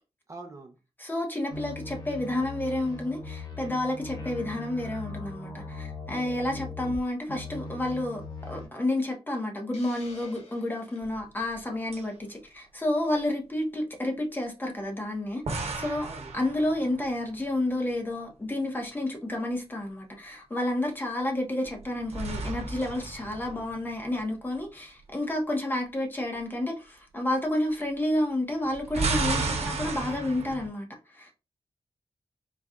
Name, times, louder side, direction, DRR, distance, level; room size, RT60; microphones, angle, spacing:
voice 1, 0.3-0.8 16.0-16.3, right 3 dB, 30° right, 0.6 m, -43 dB
voice 2, 1.0-8.2 8.5-16.1 16.3-31.3, left 1 dB, 20° left, 0.9 m, -30 dB
sound 1, 1.5-7.0 7.3-8.7, left 2 dB, 40° left, 1.1 m, -39 dB
Hiss, 9.7-11.1, left 2 dB, 85° left, 1.3 m, -50 dB
sound 2, 11.0-11.7 11.9-12.0 15.5-17.1 21.6-24.2 28.6-30.7, right 3 dB, 85° right, 0.9 m, -33 dB
4.1 x 2.3 x 3.6 m
wide cardioid pair, 175°, 11 cm